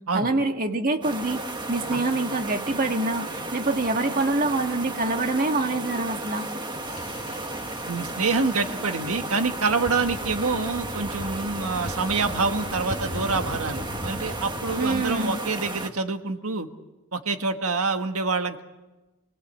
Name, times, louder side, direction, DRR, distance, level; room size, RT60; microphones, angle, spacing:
voice 1, 0.1-1.4 1.7-6.5 14.8-15.4, right 2 dB, 40° right, 5 dB, 1.6 m, -25 dB
sound 1, 1.0-15.9, right 2 dB, 20° right, 1.6 m, -34 dB
sound 2, 6.8-15.2, equal, 20° left, 2.0 m, -39 dB
voice 2, 7.9-16.7 17.1-18.6, right 4 dB, 80° right, 6 dB, 1.6 m, -26 dB
28.0 x 21.0 x 8.3 m, 1.1 s
head